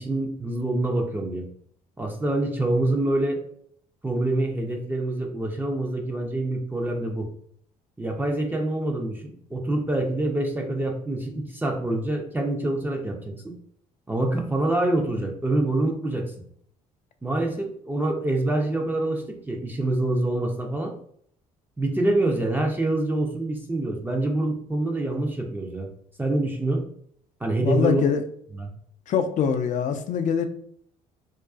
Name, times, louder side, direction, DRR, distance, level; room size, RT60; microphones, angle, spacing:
voice 1, 0.0-1.5 2.0-3.4 4.0-7.3 8.0-13.5 14.1-16.3 17.2-20.9 21.8-25.9 26.2-26.8 27.4-28.0 28.5-28.7, right 2 dB, 10° right, 1 dB, 0.5 m, -26 dB
voice 2, 27.6-28.2 29.1-30.5, left 7 dB, 45° left, 8 dB, 0.4 m, -23 dB
2.4 x 2.3 x 2.3 m, 0.65 s
hypercardioid pair, 60°, 17 cm